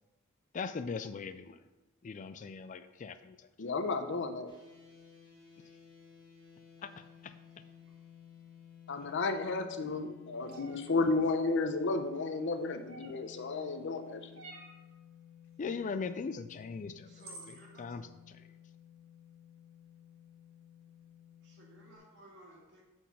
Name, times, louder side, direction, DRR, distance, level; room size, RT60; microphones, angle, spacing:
voice 1, 0.5-1.6 2.0-3.5 6.8-6.9 7.2-7.3 9.0-9.1 15.6-17.1 17.5-18.4, left 5 dB, 35° left, 11 dB, 0.3 m, -40 dB
voice 2, 3.6-4.5 8.9-14.4, left 3 dB, 60° left, 7 dB, 0.7 m, -33 dB
sound 1, 4.5-22.0, left 9 dB, 20° left, 2.1 m, -56 dB
sound 2, 10.5-10.8 12.9-13.3 14.4-14.8 16.5-16.6 17.2-17.6, right 2 dB, 90° right, 1.7 m, -49 dB
voice 3, 17.0-17.9 18.4-18.5 21.4-22.8, right 1 dB, 60° right, -3 dB, 2.5 m, -57 dB
8.2 x 4.4 x 5.7 m, 1.1 s
head